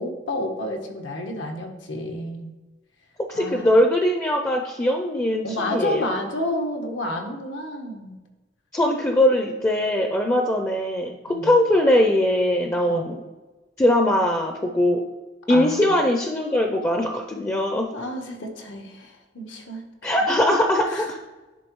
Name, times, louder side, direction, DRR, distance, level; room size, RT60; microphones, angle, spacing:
voice 1, 0.0-2.5 3.3-3.7 5.4-8.2 11.2-11.5 12.9-13.1 15.5-16.0 17.9-20.1 20.9-21.1, left 1 dB, 85° left, 2 dB, 1.1 m, -30 dB
voice 2, 3.3-6.1 8.7-13.2 13.8-15.0 15.5-17.9 20.0-21.2, left 1 dB, 15° left, 3 dB, 0.5 m, -21 dB
10.5 x 3.5 x 3.0 m, 1.2 s
head